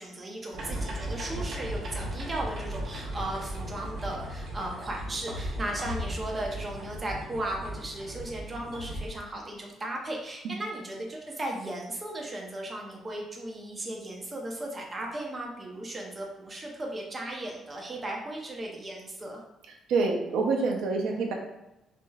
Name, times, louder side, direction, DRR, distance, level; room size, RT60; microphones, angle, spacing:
voice 1, 0.0-19.4, right 1 dB, 20° right, 0 dB, 0.7 m, -36 dB
sound 1, 0.5-9.1, equal, 60° right, 1.0 m, -36 dB
voice 2, 19.9-21.3, right 4 dB, 85° right, 2 dB, 0.7 m, -26 dB
6.0 x 3.0 x 2.3 m, 0.91 s
cardioid pair, 160°, 0 cm